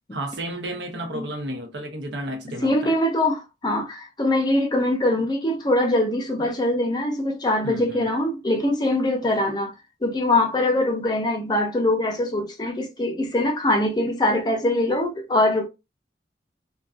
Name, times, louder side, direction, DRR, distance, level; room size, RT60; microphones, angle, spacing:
voice 1, 0.1-3.0 7.6-8.1, right 1 dB, 90° right, 0.7 m, -32 dB
voice 2, 2.6-9.7 10.0-15.7, left 1 dB, 25° left, 0.5 m, -23 dB
2.5 x 2.3 x 2.3 m
head